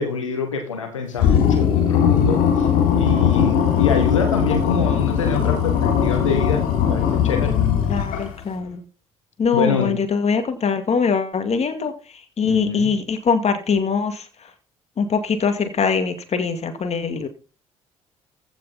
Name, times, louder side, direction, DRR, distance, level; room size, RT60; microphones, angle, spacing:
voice 1, 0.0-2.7 3.0-7.6 8.1-8.2 9.5-9.9 12.4-12.9, left 5 dB, 90° left, 4 dB, 1.9 m, -25 dB
sound 1, 1.2-8.4, left 8 dB, 65° left, 3.5 m, -19 dB
voice 2, 7.9-8.8 9.4-11.9 12.4-14.2 15.0-17.3, left 5 dB, 45° left, 8 dB, 2.3 m, -22 dB
15.0 x 6.9 x 4.2 m, 0.34 s
hypercardioid pair, 50°, 16 cm